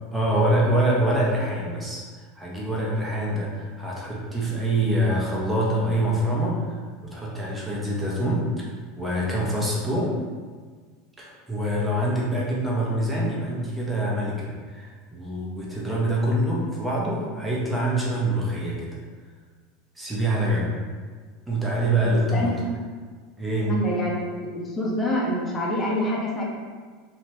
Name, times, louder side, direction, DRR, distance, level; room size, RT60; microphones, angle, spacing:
voice 1, 0.1-2.0 2.4-8.5 9.0-10.1 11.2-19.0 20.0-20.7 21.5-22.5 23.4-23.7, right 1 dB, 10° right, -4 dB, 0.8 m, -25 dB
voice 2, 22.0-22.5 22.7-22.9 23.7-24.2 24.5-26.4, equal, 25° left, -3 dB, 0.6 m, -26 dB
2.6 x 2.1 x 3.1 m, 1.5 s
hypercardioid pair, 85°, 0 cm